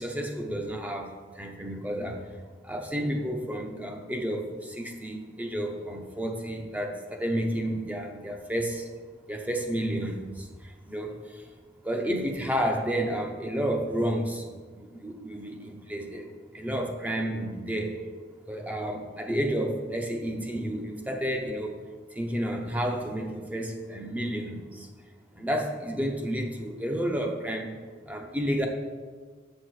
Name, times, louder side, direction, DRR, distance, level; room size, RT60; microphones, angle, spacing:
voice 1, 0.0-2.2 2.6-8.9 9.2-11.5 11.8-16.3 16.5-17.9 18.5-21.8 22.1-24.9 25.4-27.8 28.0-28.7, equal, 10° right, 2 dB, 0.7 m, -31 dB
6.8 x 6.4 x 4.8 m, 1.5 s
head